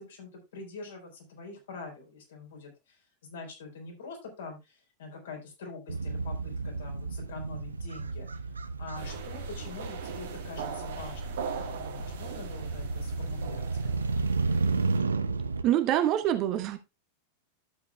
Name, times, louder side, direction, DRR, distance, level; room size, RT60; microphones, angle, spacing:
voice 1, 0.0-8.3 8.8-14.3, left 4 dB, 60° left, 4.0 m, -45 dB
Motorcycle, 5.9-15.6, right 4 dB, 75° right, 0.5 m, -33 dB
sound 1, 8.9-15.0, right 4 dB, 60° right, 1.8 m, -39 dB
voice 2, 15.6-16.8, right 12 dB, 40° right, 1.0 m, -25 dB
11.5 x 7.9 x 2.3 m
figure-of-eight pair, 90°, 0 cm